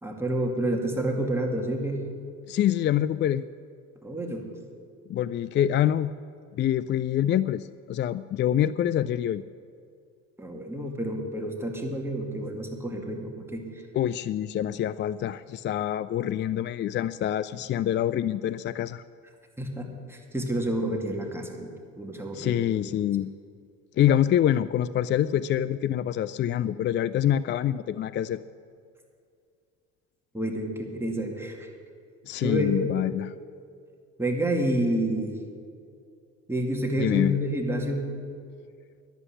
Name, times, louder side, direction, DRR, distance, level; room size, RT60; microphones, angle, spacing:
voice 1, 0.0-2.0 4.0-4.5 10.4-13.7 19.6-21.7 22.0-22.7 30.3-31.7 32.4-32.9 34.2-35.3 36.5-38.1, right 1 dB, 5° right, 1 dB, 2.3 m, -29 dB
voice 2, 2.5-3.5 5.1-6.1 6.6-9.4 13.9-19.0 22.3-23.3 24.0-28.4 32.3-33.3 37.0-37.4, left 11 dB, 35° left, 15 dB, 0.4 m, -26 dB
11.0 x 8.2 x 9.9 m, 2.3 s
hypercardioid pair, 75°, 34 cm